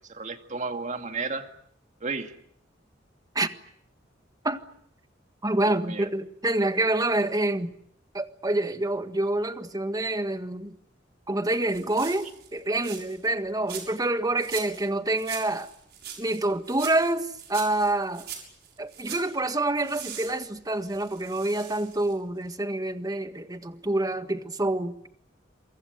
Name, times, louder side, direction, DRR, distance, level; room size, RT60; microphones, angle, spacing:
voice 1, 0.1-1.5 2.0-2.3 5.6-6.1, right 4 dB, 40° right, 2.3 m, -33 dB
voice 2, 5.4-7.8 8.1-10.7 11.3-15.7 16.2-18.3 18.8-25.1, right 2 dB, 20° right, 1.7 m, -27 dB
sound 1, 11.5-13.3 13.7-14.1 14.4-14.9 15.1-19.3 19.8-22.2 22.5-22.6, right 8 dB, 60° right, 6.9 m, -42 dB
27.5 x 24.0 x 8.1 m
head